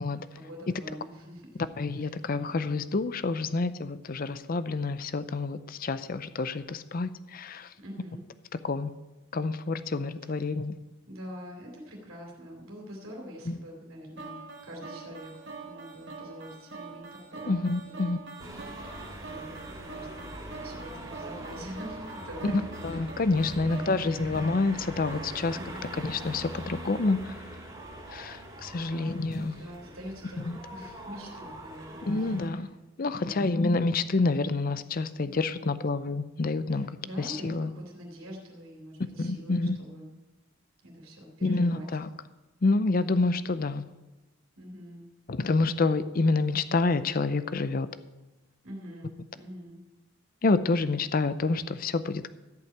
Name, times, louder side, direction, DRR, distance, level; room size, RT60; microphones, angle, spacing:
voice 1, 0.3-1.7 2.0-2.2 7.8-8.2 10.3-10.5 11.1-15.3 15.6-18.1 18.7-19.0 19.2-24.3 25.5-26.0 28.9-29.2 29.5-32.7 33.0-33.7 36.7-40.1 40.8-41.9 44.6-45.0 48.6-49.8, equal, 85° right, 0 dB, 3.0 m, -44 dB
voice 2, 1.8-7.7 8.6-8.9 9.3-10.8 13.5-13.6 17.5-18.2 22.4-25.6 26.0-27.4 28.1-29.5 30.4-30.6 32.1-32.7 33.0-36.9 37.2-37.7 39.2-39.8 41.4-42.1 42.6-43.8 45.3-47.9 50.4-52.3, left 3 dB, 45° left, 13 dB, 0.5 m, -28 dB
sound 1, 14.2-26.4, right 3 dB, 55° right, 1.9 m, -44 dB
sound 2, 18.4-32.5, right 1 dB, 20° right, 2.6 m, -43 dB
14.0 x 5.7 x 8.6 m, 1.1 s
head